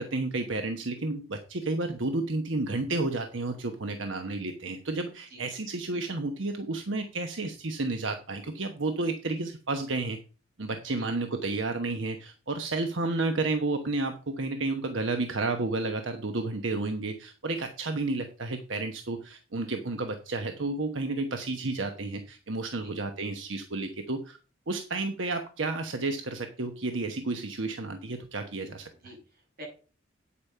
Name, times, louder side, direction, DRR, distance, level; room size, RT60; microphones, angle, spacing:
voice 1, 0.0-10.2 10.6-24.4 24.7-28.9, right 2 dB, 80° right, 6 dB, 1.1 m, -31 dB
voice 2, 28.9-29.6, equal, 50° right, -1 dB, 7.5 m, -48 dB
8.9 x 8.6 x 5.6 m, 0.36 s
head